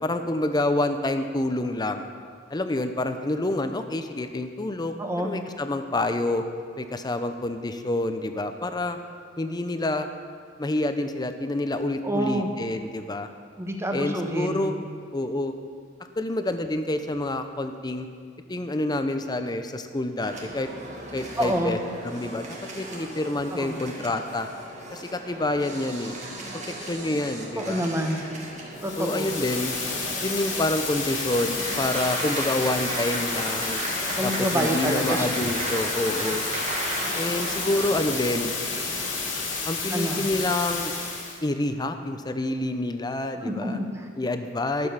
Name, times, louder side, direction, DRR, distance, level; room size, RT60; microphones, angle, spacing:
voice 1, 0.0-2.1 2.5-6.4 6.8-9.0 9.4-10.1 10.6-13.3 13.9-14.7 15.1-15.5 16.2-18.1 18.5-20.7 21.1-21.8 22.0-24.5 24.9-26.1 26.8-27.8 29.0-29.7 30.2-33.8 34.2-36.4 37.1-38.5 39.7-40.9 41.4-43.8 44.2-44.9, left 2 dB, 20° left, 8 dB, 0.5 m, -28 dB
voice 2, 5.0-5.3 12.0-12.5 13.6-14.7 21.4-21.8 23.5-23.8 27.5-28.2 28.8-29.3 34.2-35.3 39.9-40.3 43.4-44.1, equal, 15° right, 3 dB, 0.9 m, -27 dB
sound 1, 20.2-39.5, right 1 dB, 40° right, 1.7 m, -35 dB
sound 2, 28.7-41.4, left 4 dB, 75° left, 2.1 m, -31 dB
12.0 x 7.0 x 5.6 m, 2.1 s
head